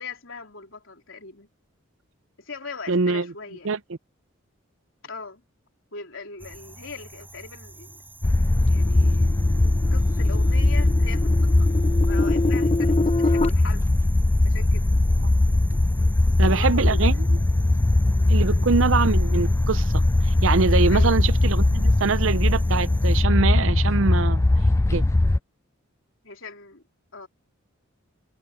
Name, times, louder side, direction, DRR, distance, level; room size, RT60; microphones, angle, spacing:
voice 1, 0.0-1.5 2.4-3.7 5.0-5.4 5.9-8.0 8.6-9.4 9.9-11.7 12.0-13.9 14.4-14.9 16.2-17.2 18.4-18.7 20.9-21.2 26.2-26.8 27.1-27.3, left 4 dB, 65° left, 4.0 m, -40 dB
voice 2, 2.9-3.3 3.6-3.8 16.4-17.1 18.3-24.4 24.9-25.0, right 4 dB, 70° right, 0.6 m, -24 dB
sound 1, 6.4-23.2, right 3 dB, 10° right, 7.1 m, -48 dB
sound 2, 8.2-25.4, left 2 dB, 15° left, 0.3 m, -20 dB
sound 3, 8.8-13.5, left 2 dB, 30° left, 1.0 m, -27 dB
head